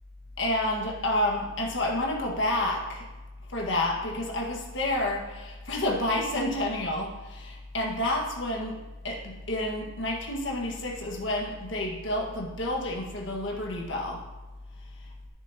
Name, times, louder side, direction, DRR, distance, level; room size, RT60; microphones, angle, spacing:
voice 1, 0.4-3.0 3.5-14.2, left 1 dB, 60° left, 0 dB, 1.7 m, -29 dB
14.0 x 6.4 x 2.9 m, 1.2 s
head